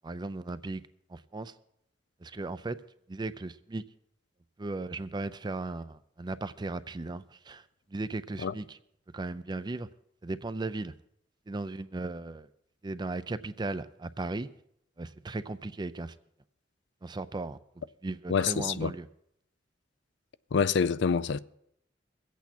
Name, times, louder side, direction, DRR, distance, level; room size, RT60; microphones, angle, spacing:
voice 1, 0.0-1.5 2.2-2.8 3.1-3.8 4.6-7.6 7.9-8.8 9.1-9.9 10.2-10.9 11.5-12.5 12.8-14.5 15.0-16.1 17.0-17.6 18.0-19.1, right 2 dB, 25° right, 0.5 m, -36 dB
voice 2, 18.3-18.9 20.5-21.4, left 6 dB, 70° left, 0.4 m, -26 dB
22.0 x 8.3 x 4.3 m
head